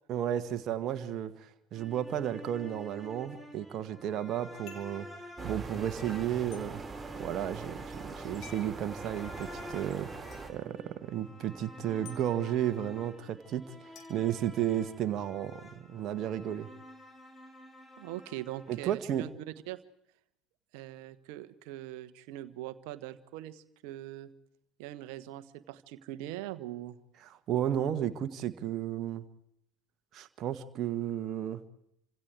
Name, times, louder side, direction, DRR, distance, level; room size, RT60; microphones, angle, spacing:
voice 1, 0.1-5.1 5.4-6.8 7.2-10.1 10.5-16.7 18.7-19.2 27.2-29.2 30.1-31.6, right 10 dB, 45° right, 9 dB, 1.5 m, -33 dB
sound 1, 1.7-18.9, equal, 10° left, 4.7 m, -50 dB
sound 2, 4.7-5.0 6.5-6.7 8.4-8.7 10.3-10.4 12.1-12.2 14.0-15.0, left 8 dB, 50° left, 3.8 m, -52 dB
sound 3, 5.4-10.5, right 4 dB, 15° right, 4.7 m, -42 dB
voice 2, 18.0-19.3 19.7-19.8 20.7-24.3 24.8-27.0, right 14 dB, 65° right, 13 dB, 1.3 m, -42 dB
29.0 x 25.5 x 4.8 m, 0.75 s
figure-of-eight pair, 65°, 0 cm